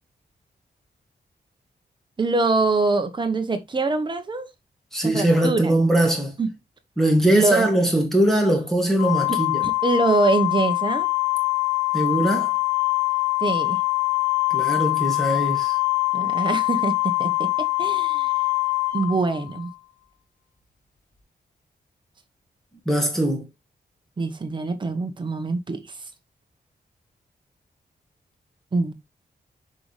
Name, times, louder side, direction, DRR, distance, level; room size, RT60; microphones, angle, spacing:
voice 1, 2.2-4.5 5.0-5.8 6.4-6.5 7.3-7.7 9.3-11.1 13.4-13.8 16.1-18.4 18.9-19.7 24.2-26.1 28.7-28.9, right 3 dB, 30° right, 1.1 m, -24 dB
voice 2, 4.9-6.3 7.0-9.6 11.9-12.5 14.5-15.8 22.9-23.4, right 1 dB, ahead, 2.3 m, -21 dB
Organ, 9.0-19.7, left 26 dB, 50° left, 1.9 m, -23 dB
6.9 x 5.2 x 3.2 m
wide cardioid pair, 180°, 17 cm